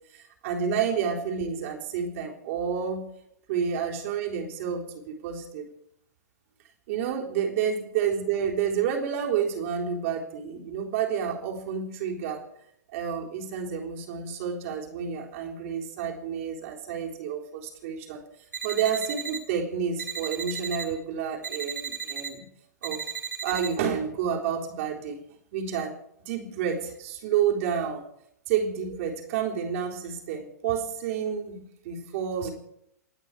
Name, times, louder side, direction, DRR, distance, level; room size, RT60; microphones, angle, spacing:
voice 1, 0.1-3.0 3.5-5.7 6.9-12.4 12.9-18.2 18.6-22.5 22.8-23.0 23.4-25.2 25.5-26.0 26.3-28.0 28.5-32.5, right 7 dB, 50° right, 0 dB, 3.7 m, -29 dB
sound 1, 18.5-19.4 20.0-20.9 21.4-22.3 22.8-23.7, right 7 dB, 80° right, 2.4 m, -34 dB
28.0 x 10.0 x 4.9 m, 0.77 s
figure-of-eight pair, 105°, 9 cm